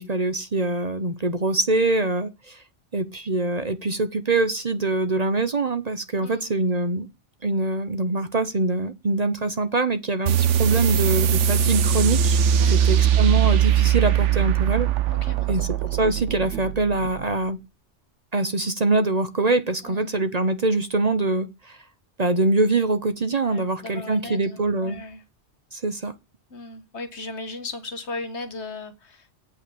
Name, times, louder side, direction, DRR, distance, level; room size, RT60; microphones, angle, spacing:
voice 1, 0.0-2.6 2.9-7.1 7.4-14.9 15.5-17.6 18.3-21.8 22.2-25.0 25.7-26.1, right 2 dB, 40° right, 0.9 m, -24 dB
sound 1, 10.3-17.4, right 8 dB, 85° right, 1.0 m, -21 dB
voice 2, 12.5-13.0 15.1-15.7 19.8-20.2 23.5-25.2 26.5-29.3, left 2 dB, 70° left, 1.8 m, -37 dB
8.2 x 5.5 x 7.0 m
omnidirectional pair, 1.2 m